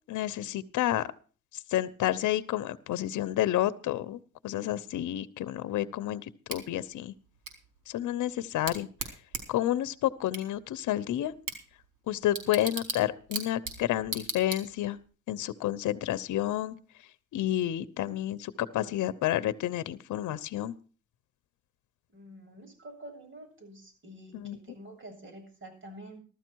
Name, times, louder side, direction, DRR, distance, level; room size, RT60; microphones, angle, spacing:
voice 1, 0.1-1.1 1.5-7.1 7.9-8.9 9.5-11.3 12.1-15.0 15.3-16.8 17.3-20.7 24.3-24.6, left 13 dB, 75° left, 15 dB, 0.9 m, -30 dB
Bicycle / Tick, 6.5-15.1, right 4 dB, 75° right, 4.1 m, -40 dB
voice 2, 22.1-26.2, right 1 dB, 40° right, 2 dB, 7.7 m, -48 dB
14.5 x 13.0 x 4.7 m, 0.38 s
cardioid pair, 90°, 30 cm